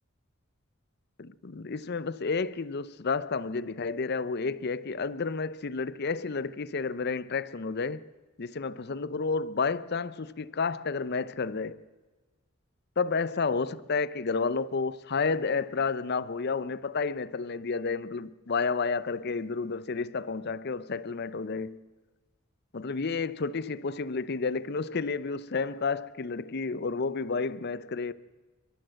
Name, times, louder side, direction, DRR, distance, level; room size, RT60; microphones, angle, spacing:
voice 1, 1.2-8.0 8.4-11.8 13.0-21.8 22.7-28.1, left 4 dB, 50° left, 0.6 m, -31 dB
28.5 x 12.5 x 7.7 m
head